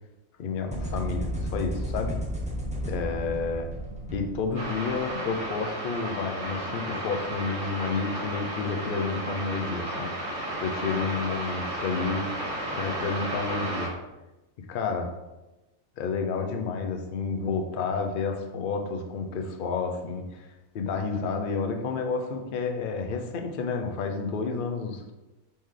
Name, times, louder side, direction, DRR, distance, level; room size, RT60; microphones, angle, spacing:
voice 1, 0.4-2.1 2.8-3.7 4.1-10.1 10.6-12.3 12.7-13.9 14.6-15.1 16.0-25.1, left 4 dB, 60° left, 4 dB, 0.5 m, -30 dB
sound 1, 0.7-5.0, equal, 10° right, 0.4 m, -33 dB
sound 2, 4.5-13.9, right 1 dB, 60° right, 1.7 m, -33 dB
4.2 x 3.2 x 3.7 m, 1.0 s
omnidirectional pair, 1.4 m